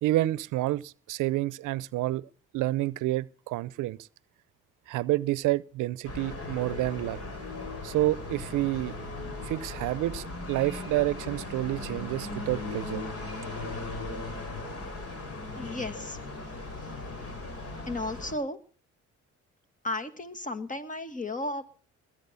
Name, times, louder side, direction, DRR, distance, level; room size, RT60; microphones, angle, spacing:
voice 1, 0.0-2.3 2.5-4.0 4.9-7.2 7.8-8.9 9.4-13.0, right 16 dB, 90° right, 0.6 m, -29 dB
sound 1, 6.0-18.3, left 2 dB, 50° left, 5.3 m, -38 dB
voice 2, 15.6-16.2 17.9-18.6 19.8-21.7, left 2 dB, 25° left, 2.0 m, -34 dB
21.0 x 8.8 x 6.9 m
cardioid pair, 90°, 30 cm